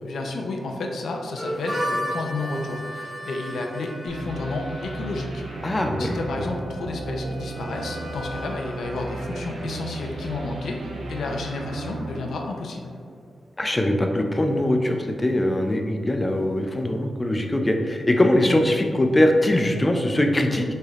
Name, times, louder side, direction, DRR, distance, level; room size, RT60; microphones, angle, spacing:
voice 1, 0.0-13.0, left 2 dB, 85° left, 2 dB, 0.6 m, -31 dB
Harmonica, 1.4-11.0, equal, 20° right, 1.4 m, -35 dB
sound 1, 4.1-13.1, right 2 dB, 80° right, 0.8 m, -35 dB
voice 2, 5.6-6.2 13.6-20.6, left 1 dB, 15° left, 4 dB, 0.4 m, -21 dB
6.6 x 3.3 x 2.4 m, 2.2 s
wide cardioid pair, 175°, 0 cm